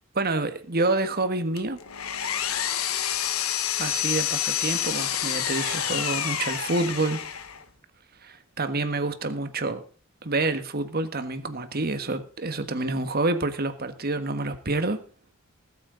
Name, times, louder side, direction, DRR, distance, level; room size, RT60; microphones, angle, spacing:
voice 1, 0.1-1.8 3.8-7.2 8.2-9.8 10.2-15.0, right 2 dB, 45° right, 1.5 m, -28 dB
Power tool, 1.6-7.6, left 10 dB, 85° left, 1.4 m, -28 dB
20.0 x 8.5 x 4.0 m
head